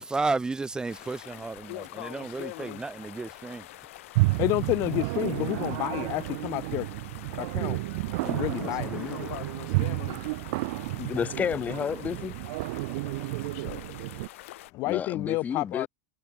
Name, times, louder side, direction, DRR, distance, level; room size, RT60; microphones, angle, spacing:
voice 1, 0.0-3.6 8.2-9.2, right 3 dB, 10° right, 0.6 m, -33 dB
sound 1, 0.9-14.7, left 16 dB, 85° left, 1.6 m, -47 dB
voice 2, 1.7-2.8 5.5-5.9 7.4-8.0 8.4-10.2 13.5-13.8, left 30 dB, 65° left, 1.3 m, -42 dB
sound 2, 4.1-14.3, right 24 dB, 70° right, 1.2 m, -31 dB
voice 3, 4.4-6.9 7.4-7.8 8.2-9.3 14.7-15.9, left 21 dB, 50° left, 0.3 m, -30 dB
voice 4, 11.0-12.4 14.8-15.9, left 7 dB, 20° left, 0.8 m, -31 dB
supercardioid pair, 135°, 7 cm